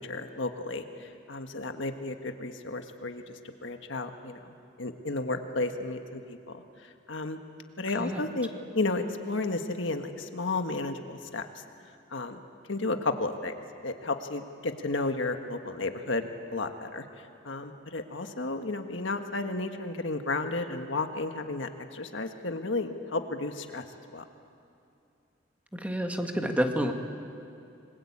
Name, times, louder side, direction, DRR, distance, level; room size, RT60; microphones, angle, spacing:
voice 1, 0.0-3.3 3.6-6.6 7.1-7.4 7.8-8.5 8.7-11.5 12.1-12.4 12.7-13.6 13.8-17.0 17.4-23.8 24.1-24.2, left 2 dB, 75° left, 6 dB, 1.6 m, -33 dB
voice 2, 25.7-26.9, equal, 5° right, 3 dB, 1.8 m, -29 dB
28.5 x 21.5 x 8.8 m, 2.6 s
head